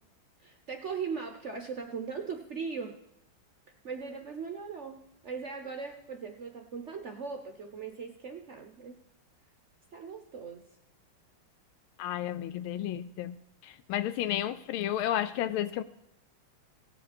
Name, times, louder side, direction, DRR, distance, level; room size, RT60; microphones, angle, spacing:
voice 1, 0.4-3.0 3.8-8.9 9.9-10.7, right 5 dB, 60° right, 5 dB, 0.7 m, -39 dB
voice 2, 12.0-13.4 13.6-15.8, left 11 dB, 85° left, 12 dB, 1.4 m, -32 dB
18.0 x 7.3 x 4.2 m, 0.83 s
omnidirectional pair, 2.3 m